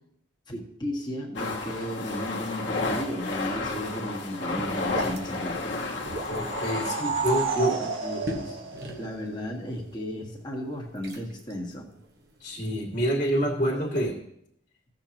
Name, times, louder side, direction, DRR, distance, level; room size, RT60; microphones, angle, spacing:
voice 1, 0.5-5.8 7.5-8.6 9.0-11.9, equal, 20° left, -2 dB, 1.6 m, -34 dB
sound 1, 1.3-7.0, left 3 dB, 60° left, 1.4 m, -32 dB
sound 2, 3.1-14.1, equal, 50° right, 1.3 m, -42 dB
sound 3, 6.0-9.5, right 5 dB, 85° right, 1.8 m, -31 dB
voice 2, 6.3-7.7 12.4-14.1, equal, 40° left, -5 dB, 2.1 m, -27 dB
16.5 x 6.7 x 3.0 m, 0.74 s
head